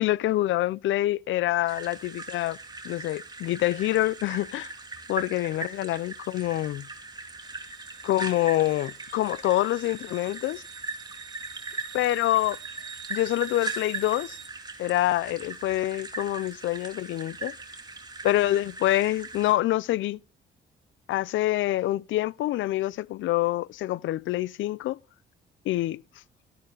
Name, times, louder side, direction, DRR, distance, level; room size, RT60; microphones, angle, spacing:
voice 1, 0.0-2.6 2.8-4.7 5.1-6.9 8.0-10.6 11.9-12.6 13.1-14.4 14.8-17.5 18.2-20.2 21.1-25.0 25.7-26.0, left 15 dB, 75° left, 0.5 m, -26 dB
sound 1, 1.7-19.5, right 3 dB, 20° right, 2.5 m, -39 dB
sound 2, 7.4-14.5, right 10 dB, 65° right, 0.8 m, -47 dB
13.0 x 11.0 x 3.9 m
cardioid pair, 90°, 20 cm